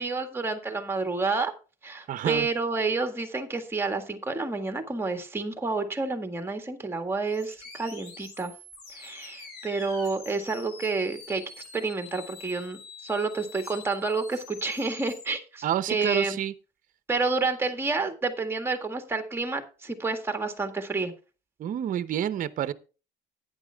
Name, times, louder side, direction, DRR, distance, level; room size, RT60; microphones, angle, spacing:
voice 1, 0.0-1.5 1.8-8.5 8.9-16.4 17.1-21.1, right 3 dB, 15° right, 1.8 m, -29 dB
voice 2, 2.1-2.5 15.6-16.5 21.6-22.7, right 10 dB, 50° right, 0.8 m, -28 dB
sound 1, 7.3-15.2, left 4 dB, 70° left, 6.1 m, -46 dB
11.5 x 9.8 x 3.5 m
cardioid pair, 110°, 17 cm